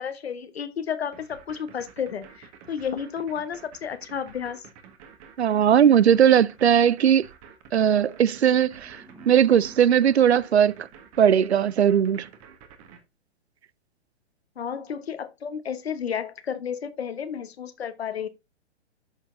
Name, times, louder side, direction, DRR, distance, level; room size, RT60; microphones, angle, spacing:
voice 1, 0.0-4.6 14.6-18.3, left 7 dB, 65° left, 1.2 m, -32 dB
sound 1, 1.1-13.0, right 7 dB, 35° right, 1.5 m, -49 dB
voice 2, 5.4-7.2 7.7-9.0 9.3-10.9 11.2-12.2, right 9 dB, 75° right, 0.6 m, -19 dB
sound 2, 8.3-11.3, right 3 dB, 5° right, 1.6 m, -50 dB
12.5 x 4.6 x 2.5 m
figure-of-eight pair, 120°, 33 cm